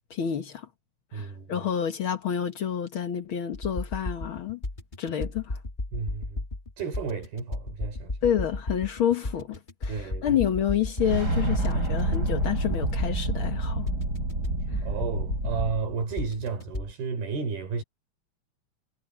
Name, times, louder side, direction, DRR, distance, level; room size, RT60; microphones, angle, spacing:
voice 1, 0.1-0.7 1.1-4.6 5.0-5.6 8.2-13.9 14.7-14.8, left 9 dB, 80° left, 1.1 m, -28 dB
voice 2, 1.1-1.5 5.9-6.4 6.8-8.1 9.9-10.3 14.8-17.8, right 5 dB, 70° right, 6.3 m, -32 dB
sound 1, 3.5-16.9, left 2 dB, 35° left, 0.7 m, -34 dB
sound 2, 11.0-15.7, right 2 dB, 25° right, 6.4 m, -28 dB
omnidirectional pair, 4.5 m